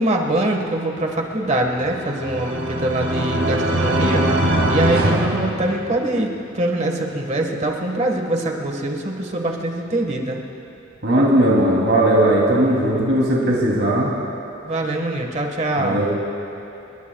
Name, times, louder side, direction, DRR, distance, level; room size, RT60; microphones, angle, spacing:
voice 1, 0.0-10.4 14.6-16.0, right 1 dB, 35° right, 2 dB, 1.5 m, -23 dB
sound 1, 1.7-6.3, right 1 dB, 85° right, 2.0 m, -21 dB
voice 2, 11.0-14.1 15.8-16.2, right 1 dB, 60° right, -4 dB, 3.0 m, -17 dB
30.0 x 19.5 x 2.3 m, 2.8 s
head